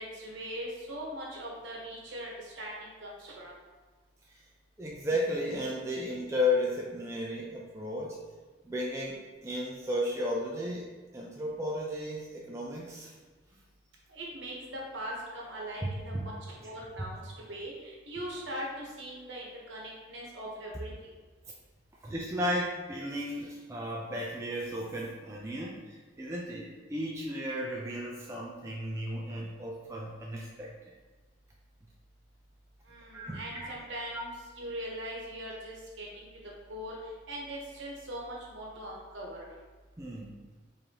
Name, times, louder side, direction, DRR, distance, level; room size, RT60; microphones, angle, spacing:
voice 1, 0.0-3.5 14.1-21.1 32.9-34.3 34.6-36.3 36.7-39.5, right 1 dB, 70° right, -3 dB, 1.0 m, -41 dB
voice 2, 4.8-8.2 8.6-10.9 11.1-13.1 15.8-16.3 22.0-30.9 33.1-33.7 34.1-34.2 40.0-40.3, left 1 dB, 15° right, -3 dB, 0.4 m, -34 dB
4.8 x 2.7 x 2.8 m, 1.3 s
head